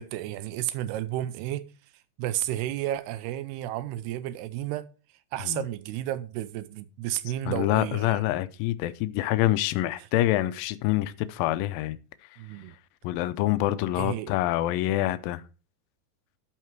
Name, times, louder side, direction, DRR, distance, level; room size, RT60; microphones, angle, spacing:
voice 1, 0.0-1.7 2.2-4.9 5.3-8.2 10.0-10.1 12.4-12.8 14.0-14.3, right 13 dB, 85° right, 2.6 m, -32 dB
voice 2, 7.5-12.0 13.0-15.4, left 15 dB, 85° left, 2.0 m, -26 dB
12.5 x 5.7 x 4.5 m
omnidirectional pair, 4.6 m